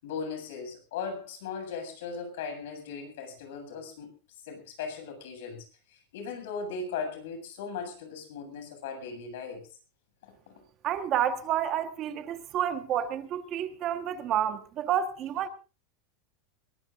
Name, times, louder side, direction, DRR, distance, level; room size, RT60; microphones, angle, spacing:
voice 1, 0.0-4.1 4.4-5.6 5.9-9.6 10.2-10.5, left 5 dB, 80° left, 7.4 m, -38 dB
voice 2, 10.8-15.5, right 10 dB, 35° right, 1.3 m, -29 dB
22.0 x 19.5 x 2.6 m
supercardioid pair, 155°, 0 cm